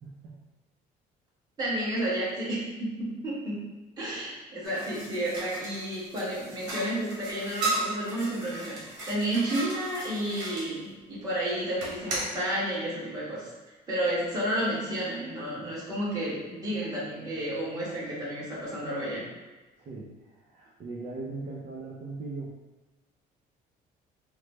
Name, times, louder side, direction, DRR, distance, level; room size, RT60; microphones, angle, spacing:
voice 1, 0.0-0.4 19.9-20.1 20.5-22.6, right 3 dB, 50° right, -6 dB, 0.6 m, -39 dB
voice 2, 1.6-3.7 4.0-19.2, right 1 dB, 25° right, -9 dB, 1.5 m, -31 dB
sound 1, 4.6-10.7 11.8-12.3, right 2 dB, 85° right, 0.9 m, -35 dB
3.1 x 2.1 x 3.0 m, 1.2 s
cardioid pair, 110°, 17 cm